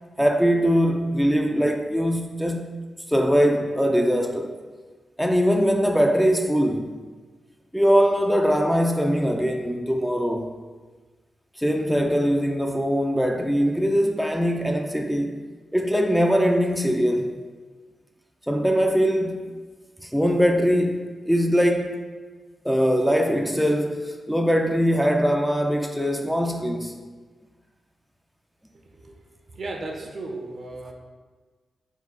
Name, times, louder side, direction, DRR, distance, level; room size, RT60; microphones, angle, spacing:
voice 1, 0.2-2.7 3.1-4.5 5.2-6.9 7.7-10.5 11.6-15.4 15.7-17.5 18.5-19.5 20.0-22.0 22.6-27.0, equal, ahead, 0.4 m, -22 dB
voice 2, 29.5-30.9, right 2 dB, 65° right, 0.7 m, -35 dB
3.6 x 2.3 x 4.5 m
supercardioid pair, 50°, 0 cm